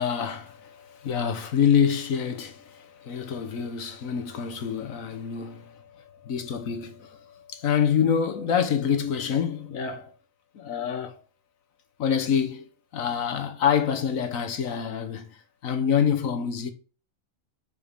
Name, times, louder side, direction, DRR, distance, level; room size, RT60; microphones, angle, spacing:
voice 1, 0.0-10.1 10.5-11.2 12.0-12.7 12.9-15.3 15.6-16.7, left 7 dB, 75° left, 1.3 m, -26 dB
5.5 x 5.0 x 5.1 m
omnidirectional pair, 1.5 m